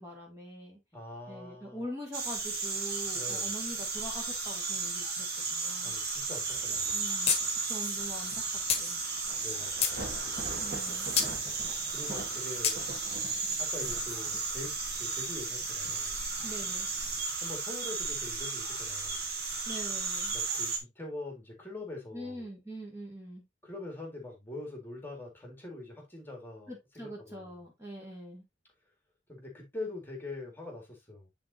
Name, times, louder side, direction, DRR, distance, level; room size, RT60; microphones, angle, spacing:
voice 1, 0.0-0.8 1.3-6.0 6.9-7.4 7.7-9.0 10.6-11.1 16.4-16.9 19.7-20.3 22.1-23.4 26.7-28.4, equal, 15° right, 1.9 m, -43 dB
voice 2, 0.9-1.9 3.1-3.5 5.8-7.0 9.4-9.9 11.9-12.8 13.6-16.2 17.4-19.3 20.3-22.5 23.6-27.5 29.3-31.3, left 2 dB, 10° left, 2.1 m, -43 dB
sound 1, 2.1-20.8, right 4 dB, 55° right, 2.0 m, -34 dB
Thunder / Rain, 6.3-17.2, right 2 dB, 35° right, 2.3 m, -47 dB
sound 2, 7.3-7.4 7.7-7.8 8.7-8.8 9.4-10.0 11.2-11.3 12.6-12.8, left 7 dB, 35° left, 1.4 m, -27 dB
9.4 x 3.9 x 2.7 m
head